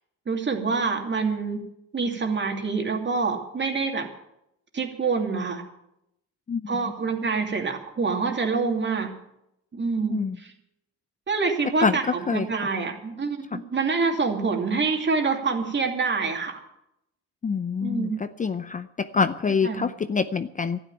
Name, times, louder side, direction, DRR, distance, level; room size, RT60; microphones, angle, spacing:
voice 1, 0.3-1.6 1.9-4.1 4.7-5.6 6.7-9.1 9.7-10.5 11.3-16.6 17.8-18.2 19.6-19.8, right 4 dB, 40° right, 3 dB, 2.6 m, -26 dB
voice 2, 12.3-12.7 13.5-13.6 17.4-20.8, left 5 dB, 25° left, 12 dB, 0.5 m, -26 dB
12.0 x 9.9 x 9.0 m, 0.81 s
cardioid pair, 90°, 30 cm